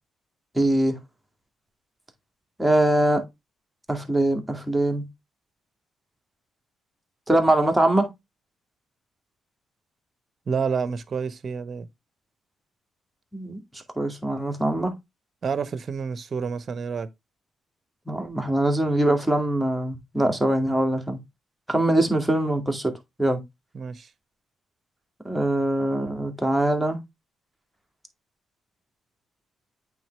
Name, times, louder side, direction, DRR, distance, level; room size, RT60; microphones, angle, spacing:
voice 1, 0.5-1.0 2.6-3.2 3.9-5.1 7.3-8.1 13.3-15.0 18.1-21.2 21.7-22.9 23.2-23.4 25.2-27.0, right 1 dB, 5° right, 2.1 m, -23 dB
voice 2, 10.5-11.9 15.4-17.1 23.7-24.1, right 5 dB, 50° right, 0.8 m, -29 dB
8.5 x 3.7 x 3.2 m
hypercardioid pair, 50°, 0 cm